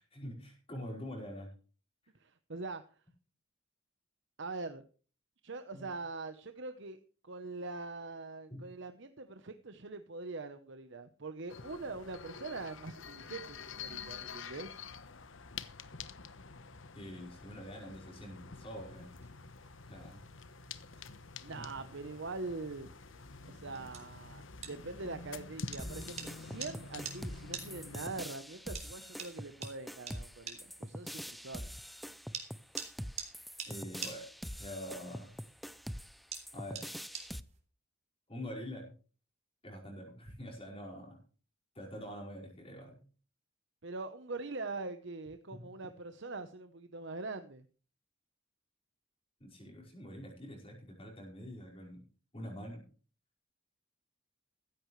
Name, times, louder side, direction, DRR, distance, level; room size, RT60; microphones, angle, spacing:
voice 1, 0.0-1.5 5.7-5.9 8.5-8.6 16.9-19.1 19.8-20.3 21.6-21.8 33.7-34.3 34.6-35.3 36.5-36.9 38.3-38.9 39.6-41.2 41.7-43.0 45.5-45.7 49.4-52.0 52.3-52.9, equal, 30° left, -2 dB, 5.2 m, -45 dB
voice 2, 2.1-2.8 4.4-4.8 5.4-14.8 21.4-22.9 23.5-31.8 43.8-47.7, right 3 dB, 60° right, 9 dB, 1.0 m, -43 dB
sound 1, 11.5-28.3, left 5 dB, 70° left, 1.1 m, -48 dB
sound 2, 18.9-37.6, right 6 dB, 35° right, 3.6 m, -50 dB
sound 3, 25.8-37.4, equal, ahead, 0.6 m, -44 dB
16.0 x 14.5 x 3.3 m, 0.39 s
head